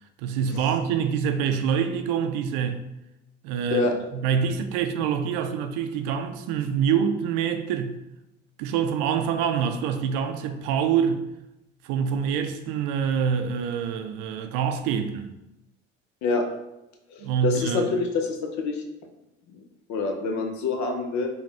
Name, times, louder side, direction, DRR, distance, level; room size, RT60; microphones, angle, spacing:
voice 1, 0.2-2.8 3.4-8.0 8.6-11.3 11.8-15.3 17.2-17.9, right 7 dB, 70° right, 0.5 m, -26 dB
voice 2, 17.1-18.8 19.5-19.6 19.9-21.3, left 4 dB, 55° left, 0.8 m, -26 dB
5.1 x 2.3 x 3.4 m
hypercardioid pair, 60°, 33 cm